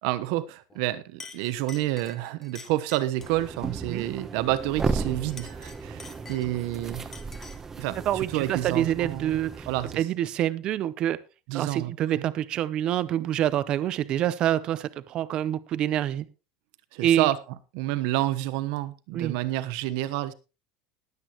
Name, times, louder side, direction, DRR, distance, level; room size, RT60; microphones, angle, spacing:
voice 1, 0.0-7.1 7.8-9.4 9.7-10.1 11.5-12.3 16.9-17.4 17.7-20.3, right 15 dB, 60° right, 1.1 m, -29 dB
Chink clink, 0.7-0.9 1.2-3.4 5.2-6.7 7.1-7.7, left 4 dB, 10° left, 0.9 m, -47 dB
sound 1, 3.2-10.0, right 4 dB, 15° right, 0.9 m, -35 dB
voice 2, 8.1-9.7 10.0-11.2 11.5-16.2 17.0-17.3 19.1-19.4, right 11 dB, 30° right, 0.6 m, -26 dB
20.5 x 8.4 x 3.0 m
cardioid pair, 180°, 3 cm